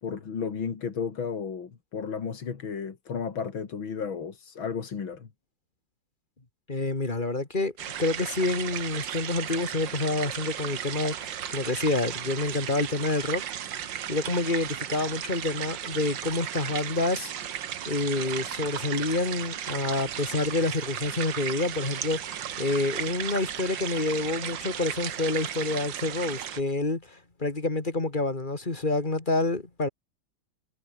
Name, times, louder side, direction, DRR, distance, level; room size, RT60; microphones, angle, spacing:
voice 1, 0.0-5.3, left 6 dB, 85° left, 3.2 m, -33 dB
voice 2, 6.7-7.7 8.0-13.4 14.1-17.6 17.9-29.9, left 2 dB, 25° left, 2.7 m, -28 dB
sound 1, 7.8-26.6, right 10 dB, 70° right, 1.8 m, -35 dB
omnidirectional pair, 2.1 m